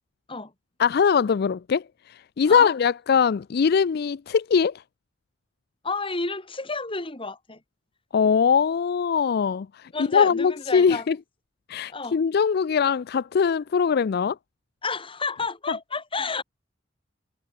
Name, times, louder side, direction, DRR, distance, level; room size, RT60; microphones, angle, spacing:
voice 1, 0.8-4.7 8.1-11.2 11.7-14.4, left 6 dB, 55° left, 0.4 m, -22 dB
voice 2, 5.8-7.6 9.9-11.1 11.9-12.2 14.8-16.4, left 3 dB, 30° left, 2.9 m, -31 dB
head